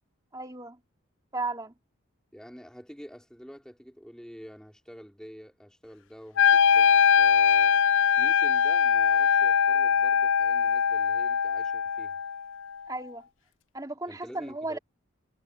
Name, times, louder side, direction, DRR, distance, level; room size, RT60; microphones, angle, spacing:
voice 1, 0.3-0.8 1.3-1.7 12.9-13.2 13.7-14.8, right 2 dB, 20° right, 2.7 m, -35 dB
voice 2, 2.3-7.8 8.2-12.2 14.1-14.8, equal, 5° left, 3.6 m, -47 dB
Wind instrument woodwind instrument, 6.4-12.4, left 7 dB, 70° left, 0.4 m, -22 dB
head